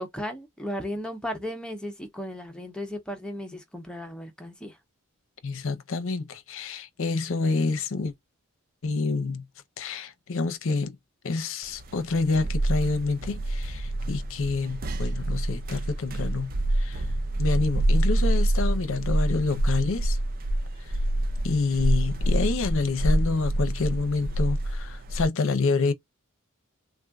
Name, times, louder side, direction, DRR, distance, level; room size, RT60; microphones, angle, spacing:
voice 1, 0.0-4.8, equal, 5° left, 0.6 m, -35 dB
voice 2, 5.4-8.1 8.8-9.4 9.8-11.0 11.2-17.0 17.4-20.2 20.8-20.9 21.4-25.9, left 3 dB, 60° left, 0.6 m, -28 dB
sound 1, 11.8-25.3, right 1 dB, 40° right, 0.5 m, -26 dB
3.5 x 2.4 x 2.2 m
head